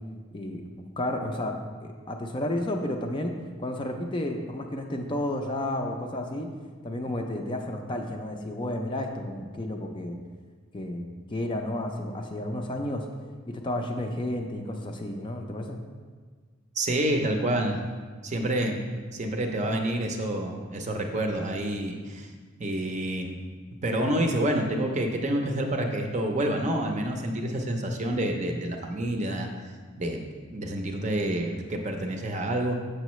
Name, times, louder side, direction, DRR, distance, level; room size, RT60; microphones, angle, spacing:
voice 1, 0.3-1.5 1.8-3.3 3.6-6.5 6.8-10.2 10.7-11.0 11.3-13.0 13.5-15.8, left 1 dB, 25° left, 3 dB, 0.4 m, -32 dB
voice 2, 16.8-17.8 18.2-18.8 19.1-22.3 22.6-23.4 23.8-29.5 30.0-30.2 30.5-32.8, right 1 dB, 35° right, 3 dB, 0.6 m, -28 dB
7.0 x 6.5 x 3.1 m, 1.5 s
head